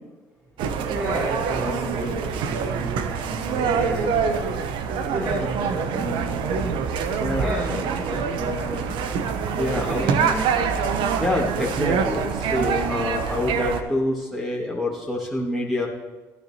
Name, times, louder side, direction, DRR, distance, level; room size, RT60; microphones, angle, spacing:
voice 1, 0.6-4.5 5.1-7.0 7.4-9.3 9.7-10.6, right 1 dB, 35° right, -8 dB, 4.0 m, -32 dB
sound 1, 0.6-13.8, right 6 dB, 65° right, 0.9 m, -25 dB
voice 2, 7.2-7.8 9.6-10.0 11.2-15.9, left 1 dB, ahead, -3 dB, 2.0 m, -26 dB
15.5 x 10.5 x 2.9 m, 1.3 s
hypercardioid pair, 65°, 9 cm